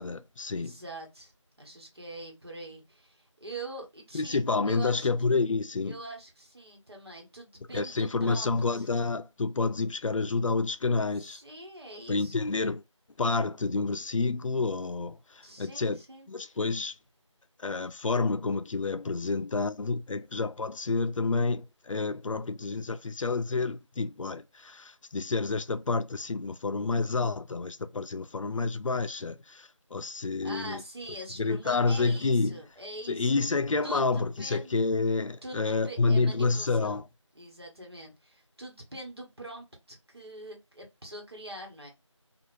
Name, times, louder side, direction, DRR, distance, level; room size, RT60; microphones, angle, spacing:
voice 1, 0.0-0.7 4.1-6.0 7.7-11.4 12.1-12.8 13.2-16.0 16.3-16.9 17.6-30.8 31.4-32.6 33.1-37.0, left 3 dB, 85° left, 0.4 m, -29 dB
voice 2, 0.5-1.3 1.6-5.1 5.8-8.9 11.2-12.5 15.4-16.6 30.4-33.5 33.8-34.9 35.4-37.0 37.3-41.9, right 1 dB, 55° right, 1.1 m, -44 dB
2.7 x 2.4 x 3.0 m
figure-of-eight pair, 180°, 16 cm